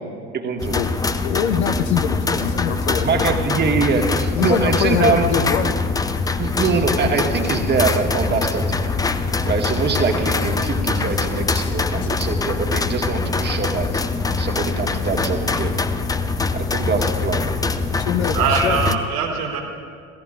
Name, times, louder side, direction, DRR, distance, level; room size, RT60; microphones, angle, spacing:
voice 1, 0.3-0.8 3.0-5.3 6.4-8.8 9.5-14.0 14.4-15.7 16.5-17.5, right 4 dB, 30° right, 3 dB, 1.7 m, -23 dB
sound 1, 0.6-19.0, left 4 dB, 10° left, 0.6 m, -23 dB
voice 2, 1.2-3.4 4.3-5.8 11.6-11.7 18.0-19.0, left 8 dB, 70° left, 9 dB, 0.9 m, -23 dB
voice 3, 17.9-19.6, right 6 dB, 60° right, 0 dB, 3.0 m, -23 dB
26.5 x 16.5 x 2.5 m, 2.1 s
figure-of-eight pair, 70°, 35 cm